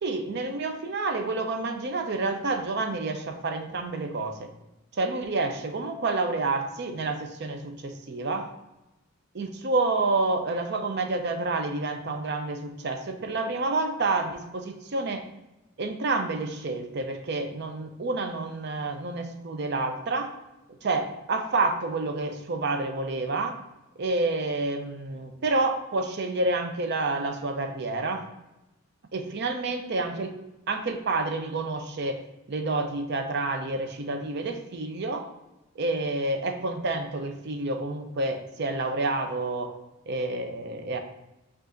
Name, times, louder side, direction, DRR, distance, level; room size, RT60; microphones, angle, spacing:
voice 1, 0.0-4.5 4.9-8.5 9.3-15.2 15.8-20.3 20.8-23.6 24.0-28.3 29.1-30.4 30.7-32.2 32.5-35.3 35.7-39.7 40.1-41.0, right 3 dB, 55° right, 5 dB, 0.6 m, -29 dB
5.2 x 2.5 x 3.8 m, 0.97 s
head